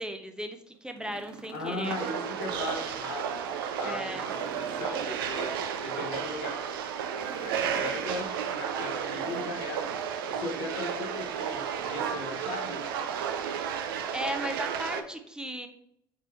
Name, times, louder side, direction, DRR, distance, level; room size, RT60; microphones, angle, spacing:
voice 1, 0.0-2.0 3.8-4.3 14.1-15.7, equal, 5° right, 6 dB, 0.5 m, -36 dB
sound 1, 0.7-3.0 3.4-3.5 3.9-5.8 7.0-8.1 9.0-9.9 11.1-11.8 12.0-12.2 12.7-13.3 14.5-14.6, right 5 dB, 60° right, 0.9 m, -48 dB
voice 2, 1.5-5.5 5.8-6.5 7.4-9.9 10.3-12.8, left 2 dB, 75° left, 1 dB, 0.9 m, -37 dB
sound 2, 1.8-15.0, right 8 dB, 75° right, 0.4 m, -33 dB
3.9 x 3.1 x 4.3 m, 0.75 s
hypercardioid pair, 60°, 12 cm